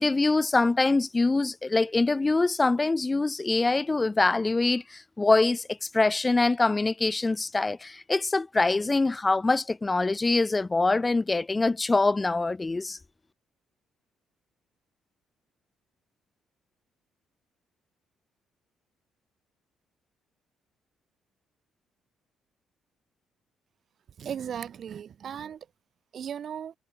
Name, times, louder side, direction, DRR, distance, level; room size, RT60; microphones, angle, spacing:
voice 1, 0.0-13.0, left 3 dB, 25° left, 3.0 m, -24 dB
voice 2, 24.2-25.6 26.1-26.7, right 8 dB, 55° right, 2.1 m, -36 dB
hypercardioid pair, 45°, 0 cm